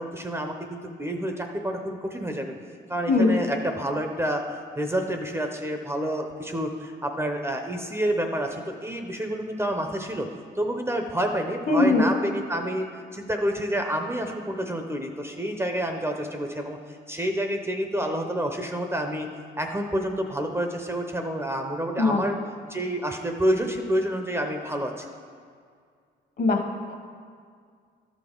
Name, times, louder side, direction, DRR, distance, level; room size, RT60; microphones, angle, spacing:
voice 1, 0.0-2.5 2.9-4.4 4.8-10.3 10.5-19.3 19.6-22.4 22.7-25.1, equal, 15° right, 4 dB, 0.7 m, -28 dB
voice 2, 3.1-3.4 11.7-12.1 22.0-22.2 26.4-26.9, left 3 dB, 50° left, 3 dB, 1.4 m, -21 dB
12.5 x 6.1 x 3.8 m, 2.1 s
cardioid pair, 90°, 20 cm